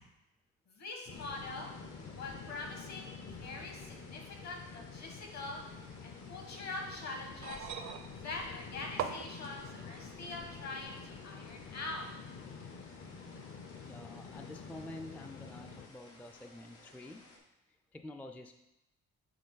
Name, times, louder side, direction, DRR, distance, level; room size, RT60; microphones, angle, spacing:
voice 1, 0.7-1.7 2.2-7.7 8.2-12.1, left 3 dB, 60° left, 1 dB, 1.7 m, -44 dB
sound 1, 1.1-17.4, left 3 dB, 85° left, 1.3 m, -58 dB
sound 2, 1.1-15.9, left 5 dB, 45° left, 0.6 m, -49 dB
sound 3, 7.3-10.3 11.3-11.4, right 8 dB, 70° right, 0.6 m, -42 dB
voice 2, 13.8-17.2 17.7-18.5, left 1 dB, 5° left, 6 dB, 0.3 m, -48 dB
7.7 x 3.7 x 4.0 m, 0.96 s
cardioid pair, 90°, 30 cm